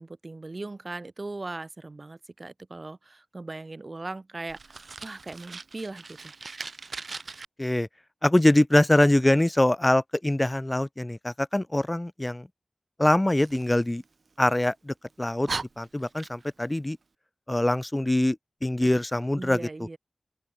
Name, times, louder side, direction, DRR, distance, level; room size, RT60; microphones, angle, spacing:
voice 1, 0.0-6.3 19.3-20.0, right 2 dB, 45° right, 3.7 m, -39 dB
Fire, 4.5-7.5 13.4-14.6 15.1-15.2 15.5-16.7, right 4 dB, 75° right, 2.9 m, -39 dB
voice 2, 8.2-12.5 13.0-14.0 14.4-15.5 15.8-17.0 17.5-18.4 18.6-19.6, left 1 dB, 20° left, 0.7 m, -23 dB
open air
wide cardioid pair, 65°, 0 cm